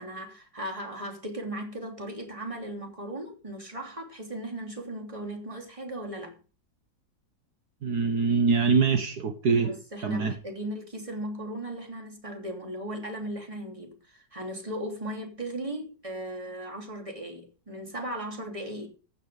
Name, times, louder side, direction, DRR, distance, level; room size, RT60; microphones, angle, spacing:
voice 1, 0.0-6.4 9.4-18.9, right 1 dB, 15° right, 3.2 m, -37 dB
voice 2, 7.8-9.8 10.0-10.4, right 5 dB, 65° right, 1.8 m, -24 dB
15.0 x 8.9 x 5.1 m
omnidirectional pair, 1.9 m